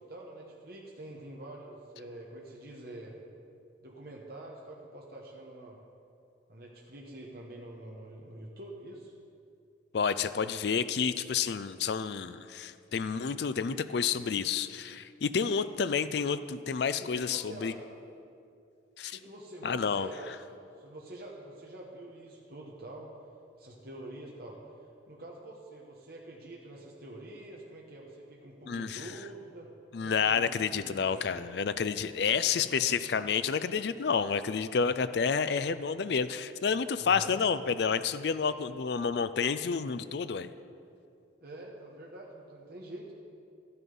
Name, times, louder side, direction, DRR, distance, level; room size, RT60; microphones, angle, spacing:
voice 1, 0.0-3.2 3.8-5.8 6.5-9.1 17.0-17.8 19.1-23.1 23.6-24.6 25.1-29.7 30.0-31.4 32.4-32.8 37.0-37.4 41.4-43.1, right 1 dB, 55° right, -2 dB, 1.2 m, -46 dB
voice 2, 9.9-17.7 19.0-19.2 19.6-20.1 28.7-29.1 29.9-40.5, left 6 dB, 60° left, 12 dB, 0.4 m, -30 dB
12.5 x 9.8 x 5.4 m, 2.5 s
head